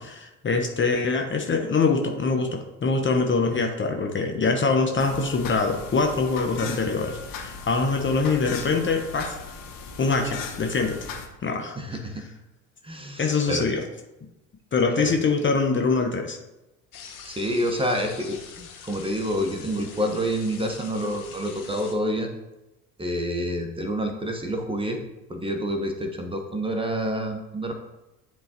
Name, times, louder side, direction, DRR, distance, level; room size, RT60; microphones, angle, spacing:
voice 1, 0.0-9.4 10.0-11.1 11.4-11.8 13.2-13.8 14.7-16.4, left 4 dB, 30° left, 4 dB, 0.9 m, -24 dB
sound 1, 5.0-11.3, left 5 dB, 50° left, 1.2 m, -38 dB
voice 2, 11.7-12.3 12.8-13.6 15.0-15.1 17.3-22.3 23.0-25.0 25.3-27.7, equal, 15° right, 3 dB, 1.1 m, -28 dB
sound 2, 16.9-22.0, left 6 dB, 90° left, 0.9 m, -44 dB
10.0 x 3.8 x 2.9 m, 0.97 s
hypercardioid pair, 60°, 41 cm